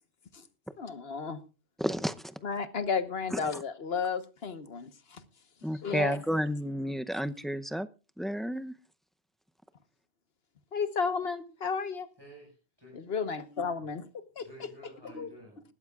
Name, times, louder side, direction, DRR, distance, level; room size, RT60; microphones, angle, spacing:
voice 1, 0.8-1.4 2.4-5.2 5.8-6.2 10.7-12.1 12.9-14.7 15.1-15.3, left 5 dB, 70° left, 10 dB, 1.4 m, -33 dB
voice 2, 1.8-2.4 3.3-3.6 5.6-7.9 8.2-8.7, equal, ahead, 10 dB, 0.4 m, -32 dB
voice 3, 12.2-12.9 13.9-14.0 14.4-15.6, right 1 dB, 20° right, -2 dB, 5.6 m, -52 dB
20.0 x 12.5 x 2.4 m, 0.32 s
omnidirectional pair, 1.1 m